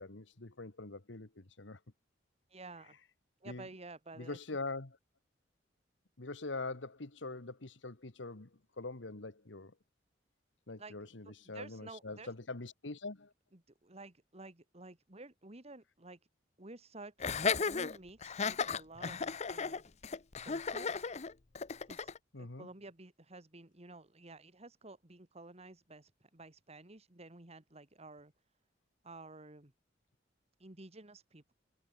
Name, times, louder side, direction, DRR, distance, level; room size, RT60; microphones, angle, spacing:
voice 1, 0.0-1.8 3.4-3.6 4.2-5.0 6.2-8.5 8.8-9.7 10.7-13.3 22.3-22.7, left 3 dB, 85° left, 1.6 m, -43 dB
voice 2, 2.5-3.0 3.4-4.4 10.8-11.0 11.2-12.3 13.5-16.2 16.6-17.3 17.7-19.8 20.4-21.1 21.8-22.1 22.4-28.3 29.0-29.7 30.6-31.5, right 2 dB, 35° right, 2.1 m, -52 dB
Laughter, 17.2-22.2, left 5 dB, 40° left, 0.7 m, -35 dB
head